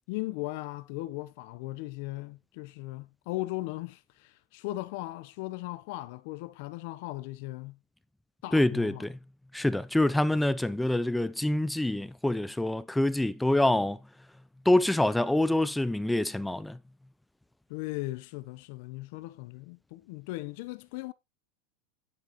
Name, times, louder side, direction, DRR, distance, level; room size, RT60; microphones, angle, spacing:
voice 1, 0.1-7.8 8.4-9.1 17.7-21.1, left 19 dB, 60° left, 0.8 m, -38 dB
voice 2, 8.5-9.1 9.5-14.0 14.7-16.8, left 1 dB, 5° left, 0.5 m, -26 dB
9.0 x 7.9 x 3.0 m
supercardioid pair, 145°, 0 cm